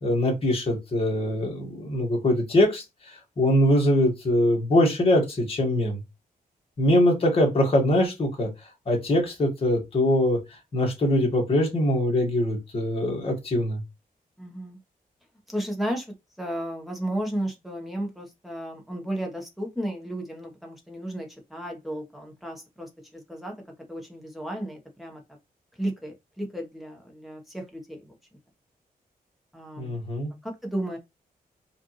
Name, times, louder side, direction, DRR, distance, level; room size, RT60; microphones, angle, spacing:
voice 1, 0.0-2.8 3.4-6.0 6.8-8.5 8.9-10.4 10.7-13.8 29.8-30.3, left 1 dB, 35° left, 1.7 m, -22 dB
voice 2, 14.4-14.8 15.5-16.1 16.4-23.5 23.9-25.2 25.8-28.1 29.5-30.0 30.4-31.0, right 1 dB, ahead, 1.1 m, -33 dB
5.0 x 2.6 x 3.1 m
wide cardioid pair, 175°, 16 cm